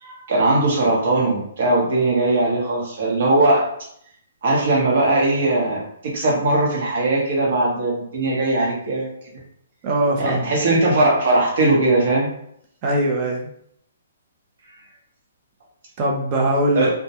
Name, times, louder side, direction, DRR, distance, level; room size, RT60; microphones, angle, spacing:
voice 1, 0.0-3.7 4.4-9.1 10.2-12.3 14.7-14.8 16.7-16.9, right 2 dB, 55° right, -2 dB, 0.9 m, -19 dB
voice 2, 9.8-10.6 12.8-13.5 16.0-16.9, right 1 dB, 30° right, 0 dB, 0.5 m, -21 dB
2.1 x 2.1 x 2.8 m, 0.70 s
hypercardioid pair, 160°, 0 cm